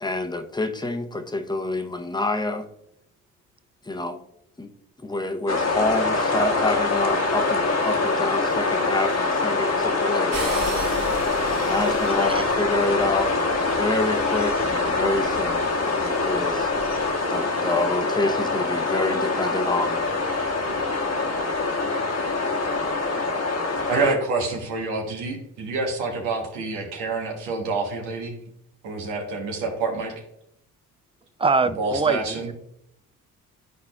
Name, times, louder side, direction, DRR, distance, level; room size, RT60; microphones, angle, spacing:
voice 1, 0.0-2.7 3.8-4.2 4.6-4.7 5.0-10.4 11.5-15.7 16.0-16.7 17.3-20.0, left 2 dB, 10° left, 6 dB, 0.8 m, -27 dB
sound 1, 5.5-24.1, left 3 dB, 40° left, 1.2 m, -24 dB
sound 2, 10.3-17.1, right 2 dB, 55° right, 1.5 m, -37 dB
voice 2, 23.9-28.4 28.8-30.1 31.8-32.5, right 3 dB, 85° right, 1 dB, 1.2 m, -27 dB
voice 3, 31.4-32.5, right 4 dB, 15° right, 13 dB, 0.4 m, -23 dB
11.0 x 4.2 x 2.3 m, 0.74 s
supercardioid pair, 55°, 38 cm